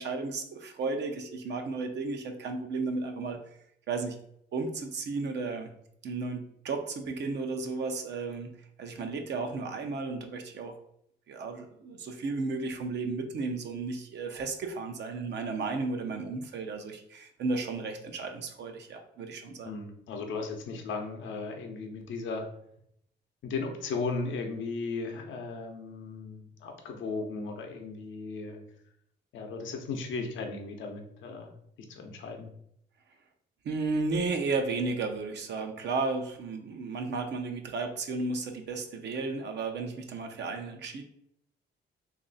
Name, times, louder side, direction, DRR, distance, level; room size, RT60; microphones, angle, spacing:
voice 1, 0.0-3.4 3.9-4.2 4.5-5.7 6.0-8.5 8.8-10.7 11.3-19.7 33.6-41.0, right 3 dB, 60° right, 4 dB, 0.7 m, -33 dB
voice 2, 19.6-22.5 23.4-28.6 29.3-31.5 31.9-32.5, left 4 dB, 75° left, 3 dB, 0.7 m, -36 dB
3.2 x 2.6 x 3.9 m, 0.72 s
cardioid pair, 90°, 20 cm